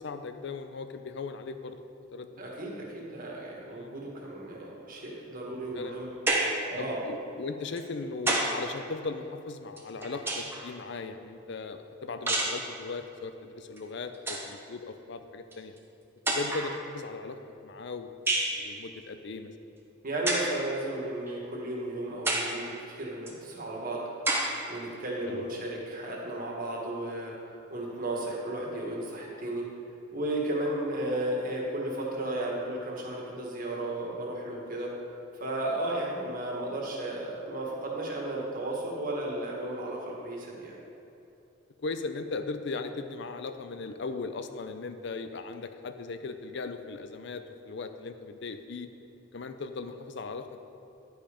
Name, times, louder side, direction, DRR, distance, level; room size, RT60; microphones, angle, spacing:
voice 1, 0.0-1.8 2.1-2.3 3.7-3.9 5.6-6.0 6.8-15.7 16.3-18.1 18.5-19.5 25.2-25.6 41.8-48.9 49.3-50.6, left 3 dB, 60° left, 9 dB, 0.5 m, -38 dB
voice 2, 2.4-6.1 6.5-7.0 20.0-24.1 24.7-27.4 27.7-29.7 30.1-34.9 35.3-40.8, right 1 dB, 45° right, -2 dB, 1.6 m, -34 dB
sound 1, 6.3-6.7 7.8-8.6 9.8-10.7 12.3-12.7 13.8-13.9 14.1-14.5 15.5-15.6 16.3-16.8 18.3-18.6 20.3-20.6 21.3-21.4 22.3-22.6 23.3-23.4 24.3-24.6, right 2 dB, 10° right, 0.9 m, -29 dB
10.5 x 5.4 x 5.1 m, 2.8 s
head